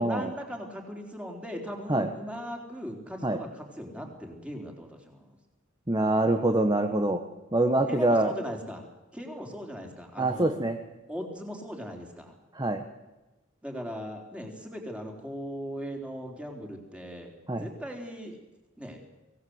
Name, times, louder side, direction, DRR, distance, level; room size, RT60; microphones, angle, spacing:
voice 1, 0.0-5.4 7.9-8.8 9.1-10.6 11.1-12.3 13.6-18.4 18.8-19.0, equal, 5° right, 1 dB, 3.9 m, -39 dB
voice 2, 5.9-7.2 7.5-8.3 10.2-10.8 12.5-12.8 17.5-17.7, right 2 dB, 20° right, 6 dB, 1.3 m, -25 dB
24.0 x 17.5 x 8.1 m, 1.1 s
head